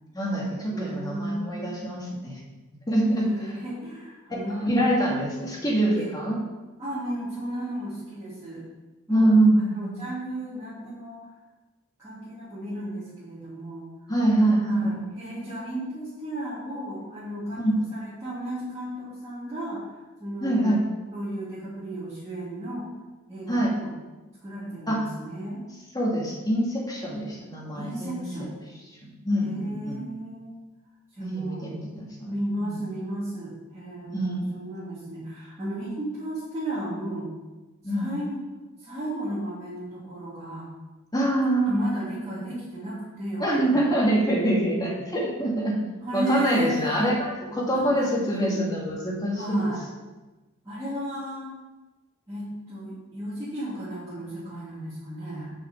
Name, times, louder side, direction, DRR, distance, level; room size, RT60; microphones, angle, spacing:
voice 1, 0.1-2.4 2.9-3.5 4.6-6.4 9.1-9.9 14.1-15.1 17.6-17.8 20.4-20.8 23.5-23.7 24.9-25.0 25.9-28.2 29.0-30.0 31.2-32.3 32.6-32.8 34.1-34.5 37.8-38.1 41.1-41.8 43.4-45.8 46.1-49.7, right 1 dB, 20° left, -3 dB, 2.0 m, -25 dB
voice 2, 0.7-2.0 3.0-5.5 5.9-6.1 6.8-8.6 9.1-9.3 9.7-11.3 12.0-13.9 14.6-19.9 20.2-20.7 21.1-22.9 23.3-23.9 24.4-25.6 27.7-28.5 29.4-30.6 31.2-31.8 32.2-37.3 37.8-40.7 41.7-43.8 46.0-47.2 47.4-48.8 49.3-49.9 50.6-51.5 52.3-55.5, right 1 dB, 15° right, -14 dB, 2.8 m, -34 dB
6.4 x 5.6 x 7.0 m, 1.2 s
head